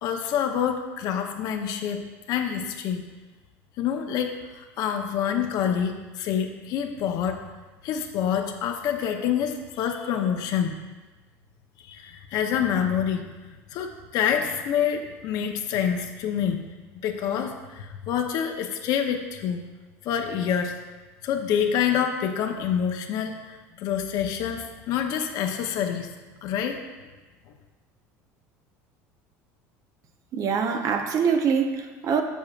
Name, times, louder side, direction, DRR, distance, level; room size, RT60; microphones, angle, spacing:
voice 1, 0.0-3.0 3.8-7.4 7.8-10.7 11.8-13.3 13.7-16.6 17.0-19.6 20.0-20.7 21.2-26.1 26.4-26.8, left 8 dB, 60° left, 4 dB, 0.8 m, -27 dB
voice 2, 30.3-32.2, right 6 dB, 50° right, 5 dB, 0.8 m, -24 dB
7.3 x 7.0 x 2.4 m, 1.2 s
supercardioid pair, 100°, 7 cm